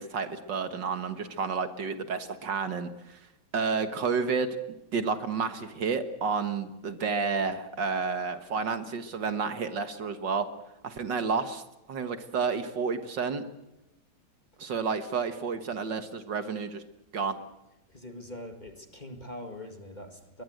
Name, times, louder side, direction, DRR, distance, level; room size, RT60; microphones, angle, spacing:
voice 1, 0.0-3.2 3.5-4.5 4.9-10.5 10.8-11.6 11.9-13.4 14.6-16.8 17.1-17.4, right 5 dB, 60° right, 9 dB, 2.0 m, -30 dB
voice 2, 17.9-20.4, left 1 dB, 20° left, 6 dB, 1.9 m, -43 dB
22.5 x 21.5 x 7.9 m, 0.95 s
omnidirectional pair, 2.3 m